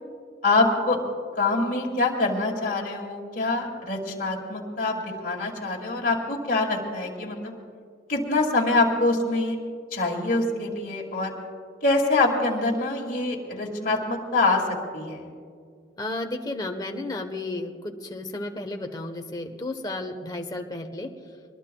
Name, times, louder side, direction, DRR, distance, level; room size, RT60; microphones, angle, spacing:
voice 1, 0.4-1.0 1.4-7.5 8.1-9.6 9.9-11.3 11.8-14.6 14.9-15.3, left 2 dB, 45° left, -1 dB, 2.4 m, -25 dB
voice 2, 16.0-21.1, left 2 dB, 20° left, 4 dB, 1.0 m, -33 dB
23.5 x 20.0 x 2.3 m, 2.2 s
head